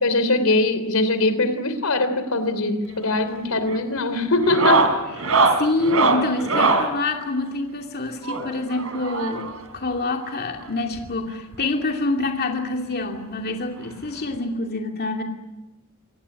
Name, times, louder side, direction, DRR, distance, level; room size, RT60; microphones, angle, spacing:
voice 1, 0.0-4.9, left 2 dB, 85° left, 11 dB, 3.3 m, -22 dB
sound 1, 2.8-3.2 3.5-3.8 4.4-6.9 8.2-9.6 10.6-10.7 11.0-11.1 11.5-11.6 12.9-13.0 14.3-14.4, right 3 dB, 75° right, 3.7 m, -22 dB
voice 2, 5.5-9.5 9.7-15.2, left 2 dB, 50° left, 3 dB, 2.5 m, -26 dB
26.5 x 18.5 x 9.6 m, 1.0 s
head